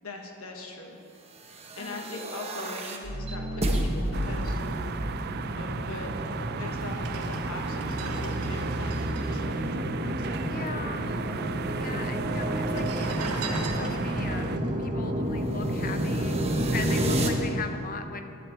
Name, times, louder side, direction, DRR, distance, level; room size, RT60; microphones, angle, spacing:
voice 1, 0.0-1.0 1.7-4.9 5.6-6.1 6.6-10.9, left 2 dB, 70° left, 2 dB, 1.2 m, -41 dB
sound 1, 1.5-17.3, right 1 dB, 30° right, 0.9 m, -30 dB
voice 2, 1.8-2.2 10.3-11.3 11.8-14.5 14.8-16.4 16.7-18.4, left 5 dB, 40° left, 7 dB, 0.6 m, -39 dB
sound 2, 4.1-14.6, right 5 dB, 45° right, 0.3 m, -36 dB
sound 3, 6.9-10.6 10.8-10.9 11.1-11.8 12.5-16.0 16.4-16.6, right 4 dB, 85° right, 0.9 m, -41 dB
11.0 x 5.2 x 8.4 m, 2.8 s
head